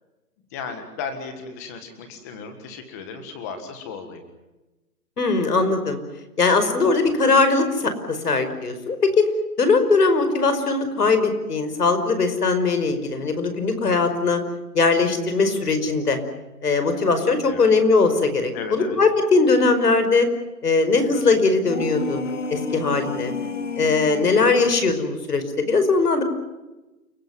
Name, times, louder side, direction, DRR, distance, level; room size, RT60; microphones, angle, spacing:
voice 1, 0.5-4.2 17.5-17.7 18.5-19.0, left 5 dB, 10° left, 7 dB, 1.6 m, -35 dB
voice 2, 5.2-6.0 6.4-9.3 9.6-14.4 14.7-16.2 16.6-20.3 20.6-23.3 23.8-26.2, left 3 dB, 75° left, 9 dB, 5.4 m, -20 dB
sound 1, 21.6-24.5, left 4 dB, 50° left, 2.3 m, -30 dB
29.5 x 16.0 x 9.5 m, 1.1 s
hypercardioid pair, 175°, 46 cm